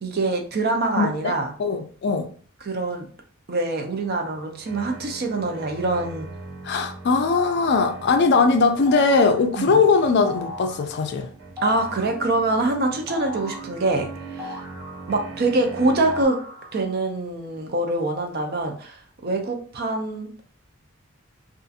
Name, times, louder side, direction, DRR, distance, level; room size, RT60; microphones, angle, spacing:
voice 1, 0.0-1.5 2.6-3.1 3.5-6.3 9.5-9.7 11.6-14.1 14.3-14.6 15.1-16.4 16.7-20.3, right 2 dB, 45° right, 0.5 m, -24 dB
voice 2, 1.0-1.3 1.6-2.3 6.6-11.3, left 4 dB, 50° left, 0.3 m, -20 dB
sound 1, 3.9-16.2, right 3 dB, 75° right, 0.8 m, -40 dB
sound 2, 7.3-7.8 8.9-9.4 10.2-10.9 11.6-12.2 13.1-13.8 14.4-15.3 16.1-16.9, left 3 dB, 10° right, 0.7 m, -37 dB
2.6 x 2.4 x 2.4 m
head